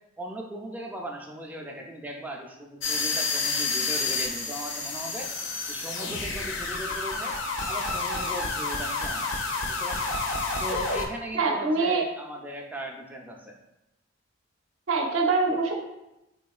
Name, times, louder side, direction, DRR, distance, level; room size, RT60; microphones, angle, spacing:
voice 1, 0.2-5.3 5.7-7.4 7.7-9.3 9.7-10.1 10.6-13.5, right 1 dB, 10° right, 1 dB, 0.3 m, -38 dB
sound 1, 2.8-11.1, left 3 dB, 60° left, 0.5 m, -29 dB
voice 2, 11.3-12.0 14.9-15.8, right 3 dB, 75° right, 1 dB, 0.5 m, -24 dB
3.8 x 3.5 x 2.3 m, 0.93 s
head